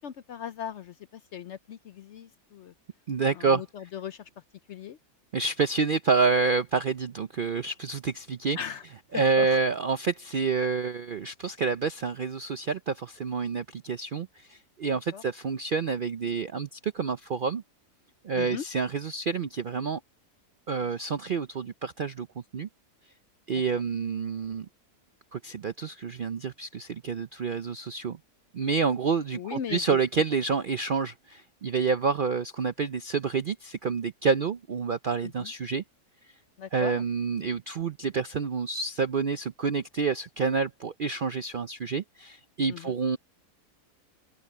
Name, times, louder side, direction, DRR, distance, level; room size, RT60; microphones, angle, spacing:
voice 1, 0.0-2.7 3.3-4.3 4.7-5.0 8.5-8.8 9.1-9.5 15.1-15.2 18.3-18.6 23.5-23.8 29.3-30.0 35.2-35.5 36.6-37.0 42.7-42.9, left 8 dB, 60° left, 0.7 m, -38 dB
voice 2, 3.1-3.6 5.3-8.6 9.1-17.6 18.2-20.0 20.7-22.3 22.5-22.7 23.5-24.7 25.3-28.2 28.5-35.8 36.7-43.2, right 5 dB, 60° right, 0.5 m, -28 dB
open air
omnidirectional pair, 1.6 m